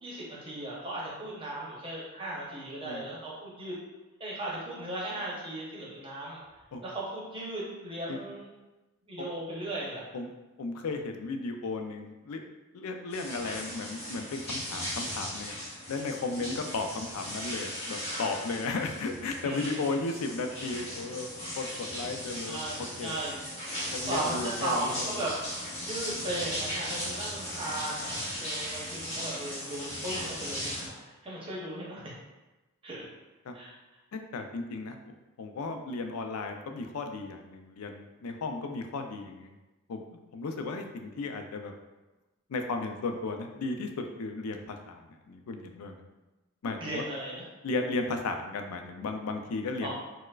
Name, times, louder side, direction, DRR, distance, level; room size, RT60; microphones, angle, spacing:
voice 1, 0.0-3.8 4.2-6.4 6.8-8.5 9.1-10.0 19.4-19.8 22.4-23.3 23.8-25.4 25.8-32.1 32.8-33.0 33.5-33.7 46.8-47.5 49.8-49.9, right 1 dB, 25° right, -5 dB, 0.7 m, -37 dB
voice 2, 10.6-12.4 12.7-15.6 15.9-21.3 21.6-22.6 23.0-23.1 23.9-25.2 28.9-29.0 33.5-33.6 34.1-35.0 35.4-39.6 39.9-40.0 40.3-41.7 42.5-46.0 46.6-47.0 47.6-49.9, left 3 dB, 85° left, 5 dB, 0.4 m, -35 dB
sound 1, 13.1-30.9, equal, 30° left, 0.9 m, -37 dB
4.4 x 2.1 x 2.3 m, 1.1 s
head